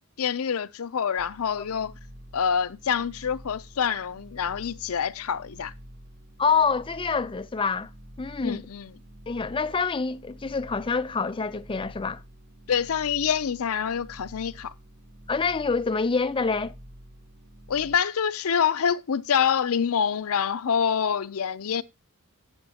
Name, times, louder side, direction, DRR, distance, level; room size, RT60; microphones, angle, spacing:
voice 1, 0.2-1.9 2.3-5.7 8.4-8.9 12.7-14.7 17.7-21.8, left 7 dB, 75° left, 0.5 m, -26 dB
Huge Laser, 1.2-18.0, right 1 dB, 50° right, 1.1 m, -48 dB
voice 2, 6.4-7.9 8.2-8.7 9.3-12.2 15.3-16.7, left 5 dB, 25° left, 0.4 m, -26 dB
11.5 x 8.7 x 2.8 m
head